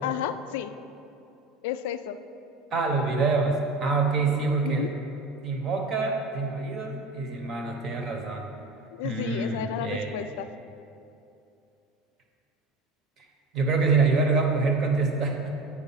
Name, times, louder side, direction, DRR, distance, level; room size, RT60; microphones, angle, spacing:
voice 1, 0.0-0.7 1.6-2.2 4.6-4.9 8.9-10.5, left 11 dB, 75° left, 10 dB, 0.3 m, -32 dB
voice 2, 2.7-4.9 5.4-8.5 9.0-10.2 13.2-13.3 13.5-15.5, right 4 dB, 30° right, 3 dB, 0.8 m, -26 dB
8.3 x 4.7 x 5.6 m, 2.7 s
cardioid pair, 180°, 0 cm